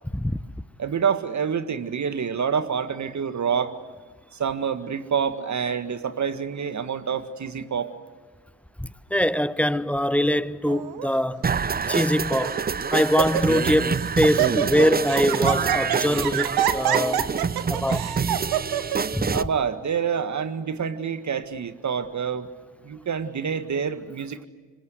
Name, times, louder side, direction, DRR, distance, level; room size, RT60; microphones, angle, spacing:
voice 1, 0.8-3.8 4.3-7.9 19.3-22.5 22.8-24.5, right 7 dB, 45° right, 1.9 m, -27 dB
voice 2, 8.8-11.4 11.9-12.6 12.9-17.3 17.7-18.1 19.1-19.4, equal, 5° left, 1.0 m, -23 dB
Laughter, 10.7-11.1 11.8-11.9 12.4-12.7 13.0-13.7 14.0-19.0, right 11 dB, 70° right, 1.5 m, -26 dB
sound 1, 11.4-19.4, right 5 dB, 25° right, 0.7 m, -26 dB
26.0 x 25.0 x 8.1 m
hypercardioid pair, 40°, 39 cm